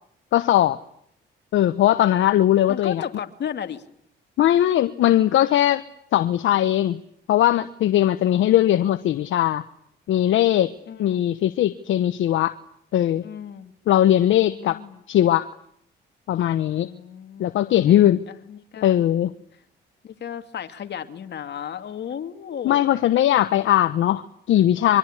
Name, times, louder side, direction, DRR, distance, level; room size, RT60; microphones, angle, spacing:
voice 1, 0.3-0.8 1.5-3.0 4.4-5.8 6.1-7.0 7.3-9.6 10.1-10.7 11.0-12.5 12.9-13.2 13.9-14.8 15.1-15.5 16.3-16.9 17.4-18.2 18.8-19.3 22.6-25.0, left 12 dB, 75° left, 11 dB, 1.1 m, -19 dB
voice 2, 2.7-3.8 8.3-8.6 10.9-11.3 13.2-13.7 14.1-15.0 16.8-19.0 20.0-22.8, left 8 dB, 60° left, 7 dB, 2.7 m, -35 dB
24.5 x 24.0 x 9.9 m, 0.69 s
cardioid pair, 90°, 20 cm